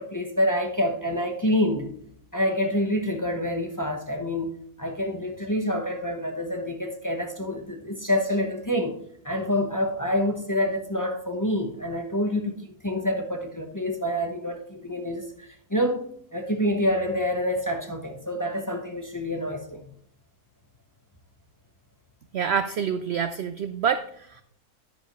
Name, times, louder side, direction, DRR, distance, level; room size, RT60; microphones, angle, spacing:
voice 1, 0.0-1.9 2.3-4.5 4.8-9.0 9.2-16.0 16.3-19.8, left 1 dB, 15° left, 0.8 m, -27 dB
voice 2, 22.3-24.4, right 7 dB, 75° right, 0.6 m, -27 dB
10.5 x 9.8 x 3.1 m
omnidirectional pair, 1.7 m